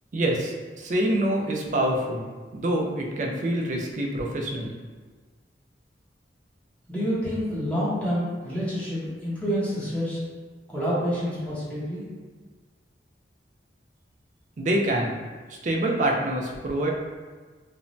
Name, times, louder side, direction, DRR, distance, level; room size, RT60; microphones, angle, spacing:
voice 1, 0.1-2.3 2.5-4.7 14.6-15.2 15.5-16.9, right 1 dB, 45° right, 0 dB, 0.4 m, -26 dB
voice 2, 6.9-10.2 10.7-12.0, equal, 5° left, -10 dB, 0.7 m, -28 dB
2.5 x 2.1 x 3.0 m, 1.4 s
head